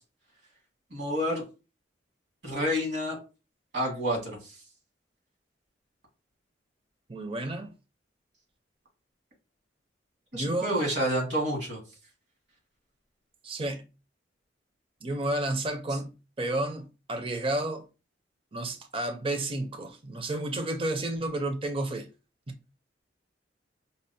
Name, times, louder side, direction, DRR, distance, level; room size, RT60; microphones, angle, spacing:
voice 1, 0.9-1.4 2.4-3.2 3.7-4.6 10.3-11.8, equal, 65° right, 1.8 m, -29 dB
voice 2, 7.1-7.7 10.3-10.8 13.4-13.9 15.0-17.8 18.5-22.1, right 1 dB, 30° right, 0.5 m, -31 dB
5.2 x 2.0 x 2.7 m
head